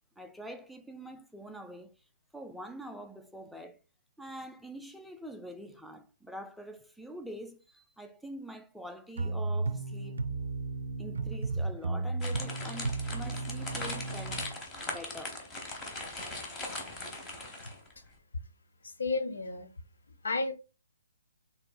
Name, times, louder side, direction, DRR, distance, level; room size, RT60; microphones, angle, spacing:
voice 1, 0.2-1.9 2.3-3.8 4.2-10.2 11.0-14.4 14.8-15.4, equal, ahead, 0.4 m, -45 dB
sound 1, 9.2-14.5, right 3 dB, 70° right, 0.4 m, -34 dB
sound 2, 12.2-17.9, left 2 dB, 15° left, 1.0 m, -40 dB
voice 2, 18.8-19.7 20.2-20.5, left 3 dB, 70° left, 0.6 m, -32 dB
4.4 x 3.5 x 2.3 m
figure-of-eight pair, 140°, 0 cm